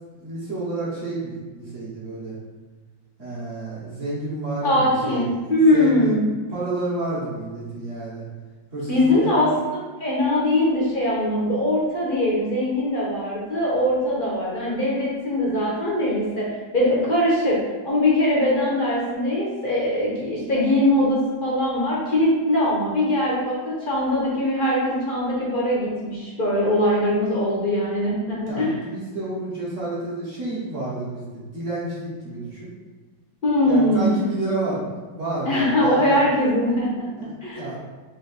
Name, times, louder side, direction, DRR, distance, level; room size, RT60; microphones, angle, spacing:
voice 1, 0.2-2.4 3.2-5.2 5.7-6.2 6.5-8.3 8.7-9.3 28.5-32.7 33.6-36.2 37.2-37.8, right 2 dB, 50° right, -8 dB, 1.2 m, -30 dB
voice 2, 4.6-6.3 8.9-9.5 10.0-16.5 16.7-17.6 17.8-28.7 33.4-34.1 35.5-37.1 37.4-37.6, left 1 dB, 50° left, -5 dB, 0.6 m, -21 dB
3.9 x 2.6 x 4.0 m, 1.3 s
omnidirectional pair, 2.1 m